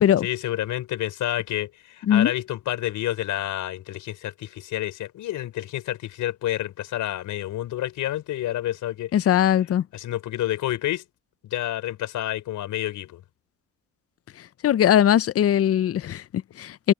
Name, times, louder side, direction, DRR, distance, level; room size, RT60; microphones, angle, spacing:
voice 1, 0.2-9.1 9.9-11.0 11.4-13.2, left 13 dB, 85° left, 5.5 m, -29 dB
voice 2, 9.1-9.8 14.6-16.9, left 10 dB, 50° left, 0.6 m, -20 dB
cardioid pair, 90°, 30 cm